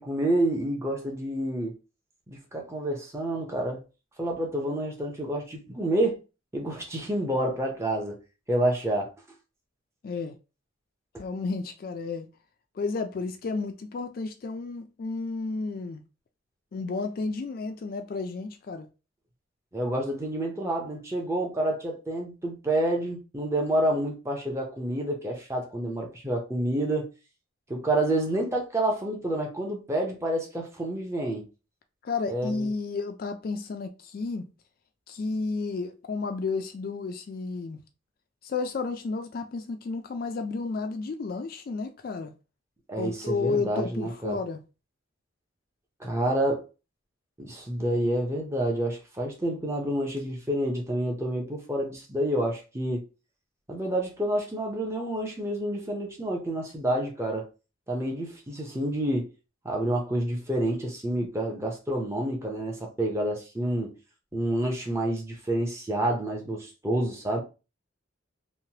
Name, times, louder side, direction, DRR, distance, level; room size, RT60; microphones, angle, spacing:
voice 1, 0.0-1.7 2.3-3.8 4.2-6.2 6.5-8.2 8.5-9.1 19.7-27.1 27.7-31.5 32.3-32.7 42.9-44.4 46.0-46.6 47.4-53.0 53.7-57.5 57.9-59.3 59.6-63.9 64.3-67.4, right 1 dB, 15° right, 0.6 m, -28 dB
voice 2, 10.0-10.3 11.2-12.3 12.8-16.0 16.7-18.9 32.0-34.5 35.1-37.8 38.4-42.3 43.0-44.6, left 4 dB, 45° left, 0.3 m, -32 dB
3.1 x 2.2 x 2.8 m
head